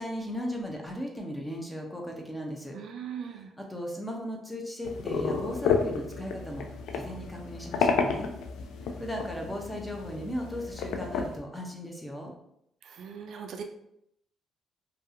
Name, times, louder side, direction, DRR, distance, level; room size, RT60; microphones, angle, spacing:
voice 1, 0.0-2.8 3.3-6.7 6.9-8.3 8.8-12.3, equal, 5° left, 0 dB, 0.6 m, -37 dB
voice 2, 2.7-3.5 12.8-13.6, right 7 dB, 70° right, 4 dB, 0.3 m, -39 dB
sound 1, 4.8-11.4, left 5 dB, 85° left, 0.3 m, -31 dB
2.7 x 2.3 x 2.5 m, 0.76 s
cardioid pair, 90°, 0 cm